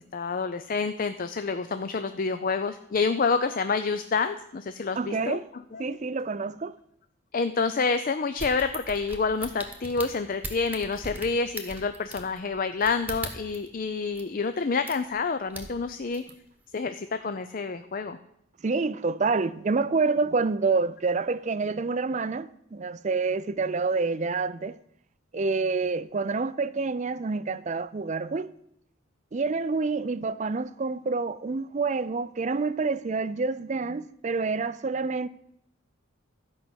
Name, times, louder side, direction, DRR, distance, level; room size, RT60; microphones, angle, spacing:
voice 1, 0.1-5.4 5.7-6.0 7.3-16.2 16.7-18.2, left 4 dB, 40° left, 0.5 m, -28 dB
voice 2, 5.0-5.5 5.8-6.8 18.6-24.8 25.3-28.5 29.3-35.3, right 4 dB, 35° right, 0.4 m, -27 dB
sound 1, 8.4-13.7 14.1-14.2 14.9-15.2 15.5-16.3 16.7-16.8, right 2 dB, 10° right, 1.3 m, -39 dB
13.0 x 5.5 x 8.0 m
head